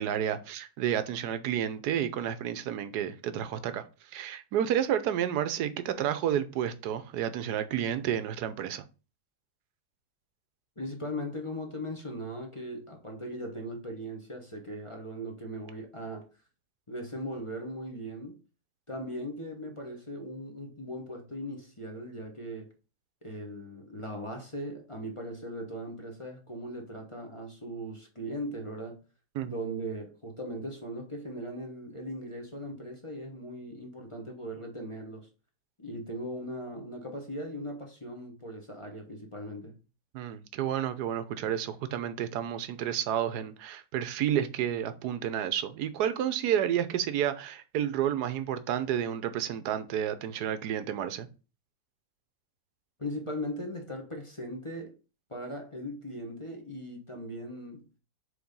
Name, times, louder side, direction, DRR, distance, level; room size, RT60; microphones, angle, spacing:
voice 1, 0.0-3.8 4.1-8.8 29.3-29.5 40.1-51.3, right 10 dB, 65° right, 1.1 m, -30 dB
voice 2, 10.8-16.2 16.9-18.4 18.9-22.7 23.2-29.0 29.4-35.3 35.8-39.8 53.0-54.9 55.3-57.9, equal, 20° left, 0.8 m, -39 dB
5.0 x 4.1 x 5.3 m
omnidirectional pair, 2.1 m